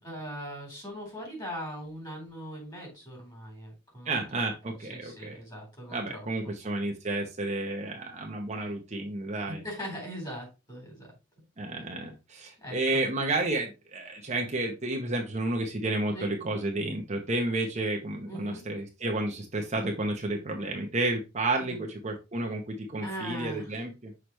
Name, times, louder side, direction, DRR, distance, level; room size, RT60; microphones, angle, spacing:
voice 1, 0.0-6.3 9.5-11.1 12.6-13.0 16.1-16.3 18.3-18.6 21.6-21.8 23.0-23.6, equal, 20° left, 0 dB, 3.6 m, -40 dB
voice 2, 4.0-5.4 5.9-9.6 11.6-24.1, right 2 dB, 35° right, 2 dB, 0.9 m, -31 dB
6.3 x 4.8 x 3.1 m, 0.27 s
head